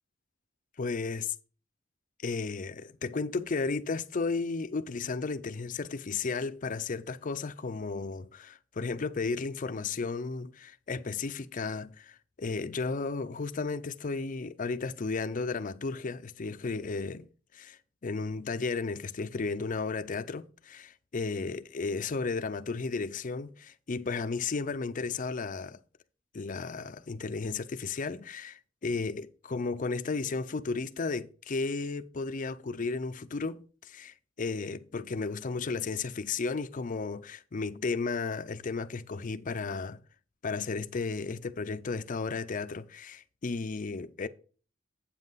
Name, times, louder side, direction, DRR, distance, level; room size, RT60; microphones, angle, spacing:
voice 1, 0.8-1.3 2.2-17.3 17.5-25.8 26.3-40.0 40.4-44.3, left 4 dB, 40° left, 0.5 m, -34 dB
8.6 x 7.4 x 4.0 m
head